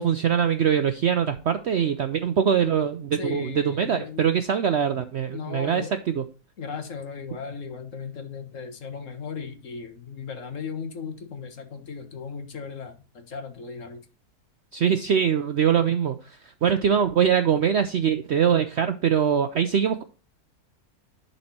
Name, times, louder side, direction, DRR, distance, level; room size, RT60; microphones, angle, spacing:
voice 1, 0.0-6.2 14.7-20.0, right 8 dB, 65° right, 9 dB, 0.7 m, -23 dB
voice 2, 3.2-4.3 5.3-5.9 6.6-14.0, left 5 dB, 55° left, 6 dB, 1.6 m, -36 dB
11.0 x 4.2 x 4.2 m, 0.36 s
omnidirectional pair, 1.7 m